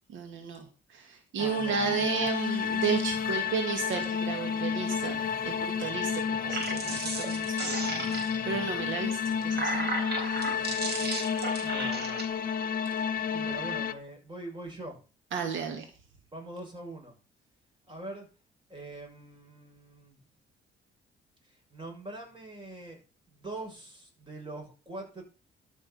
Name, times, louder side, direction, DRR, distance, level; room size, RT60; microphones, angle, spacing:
voice 1, 0.1-9.2 9.4-9.9 10.2-10.7 11.6-11.7 12.9-13.0 13.3-13.5 15.3-15.9, right 6 dB, 75° right, 4 dB, 2.2 m, -34 dB
sound 1, 1.4-13.9, left 7 dB, 45° left, 1.0 m, -31 dB
voice 2, 1.4-2.3 11.6-12.2 13.4-15.0 16.3-17.1 17.9-18.3 18.7-20.2 21.5-23.0 23.3-25.2, right 2 dB, 25° right, 2 dB, 6.6 m, -43 dB
sound 2, 6.3-8.6 9.2-12.2, right 3 dB, 55° right, 4.1 m, -35 dB
13.0 x 6.4 x 5.7 m, 0.34 s
cardioid pair, 90°, 20 cm